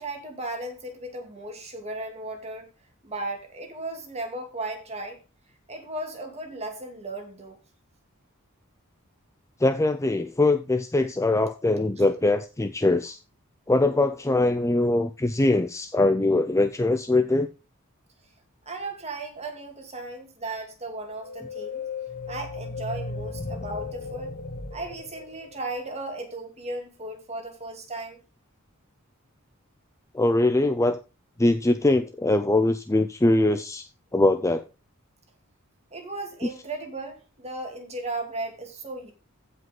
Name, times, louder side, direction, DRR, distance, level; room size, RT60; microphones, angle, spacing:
voice 1, 0.0-2.7 3.0-5.2 5.7-7.6 18.7-21.8 22.3-24.3 24.7-28.2 35.9-39.1, right 2 dB, 30° right, 2.5 m, -36 dB
voice 2, 9.6-13.2 13.7-17.5 30.1-31.0 31.4-33.9 34.1-34.6, left 2 dB, 15° left, 0.5 m, -22 dB
sound 1, 21.2-25.8, left 4 dB, 40° left, 1.0 m, -36 dB
15.5 x 5.5 x 3.8 m
head